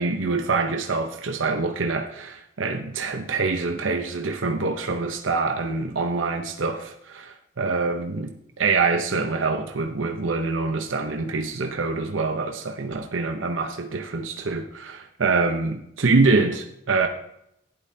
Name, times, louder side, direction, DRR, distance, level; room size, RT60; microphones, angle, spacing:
voice 1, 0.0-17.1, right 3 dB, 90° right, 4 dB, 0.8 m, -25 dB
12.0 x 10.5 x 2.8 m, 0.76 s
head